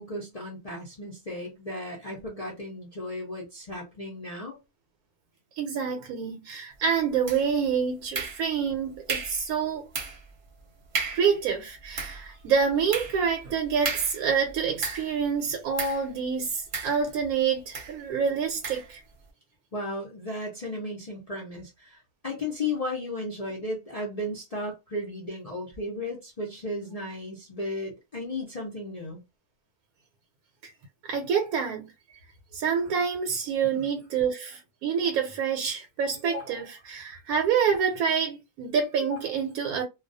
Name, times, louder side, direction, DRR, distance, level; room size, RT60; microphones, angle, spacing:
voice 1, 0.0-4.6 19.7-22.0 22.2-29.2 33.6-33.8, left 1 dB, 55° left, 0.4 m, -35 dB
voice 2, 5.6-9.8 11.1-19.0 31.0-31.9 32.5-39.8, right 6 dB, 80° right, 1.0 m, -27 dB
sound 1, 7.3-7.7 8.1-8.7 9.1-9.5 9.9-10.3 10.6-10.7 10.9-11.3 11.8-15.2 15.8-16.1 16.7-17.3 17.7-18.0 18.6-18.9, right 4 dB, 45° right, 0.8 m, -34 dB
2.3 x 2.2 x 2.5 m
omnidirectional pair, 1.5 m